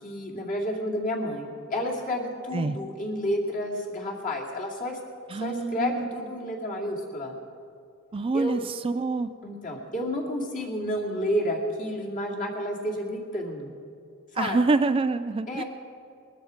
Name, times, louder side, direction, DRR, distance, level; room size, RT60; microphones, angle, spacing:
voice 1, 0.0-5.0 5.4-7.3 8.3-8.6 9.4-13.7 14.4-14.6 15.5-15.6, equal, 40° left, -2 dB, 2.5 m, -30 dB
voice 2, 5.3-6.1 8.1-9.3 14.4-15.6, right 3 dB, 25° right, 11 dB, 0.3 m, -26 dB
20.5 x 13.5 x 5.1 m, 2.5 s
head